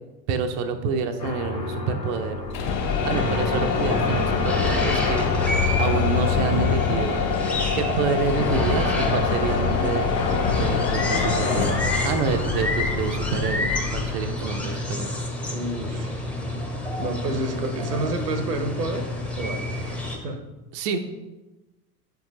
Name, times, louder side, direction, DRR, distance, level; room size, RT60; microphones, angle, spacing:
voice 1, 0.3-2.4 3.0-7.3 7.8-10.1 10.6-15.1 20.7-21.0, right 5 dB, 40° right, 6 dB, 0.5 m, -28 dB
sound 1, 1.2-17.1, left 4 dB, 85° left, 1.1 m, -30 dB
sound 2, 2.4-14.3, left 5 dB, 50° left, 1.0 m, -26 dB
sound 3, 2.6-20.2, left 1 dB, 5° left, 0.8 m, -30 dB
voice 2, 15.5-16.3 17.0-20.4, right 2 dB, 75° right, 8 dB, 0.9 m, -30 dB
7.8 x 4.5 x 2.9 m, 1.1 s
figure-of-eight pair, 80°, 48 cm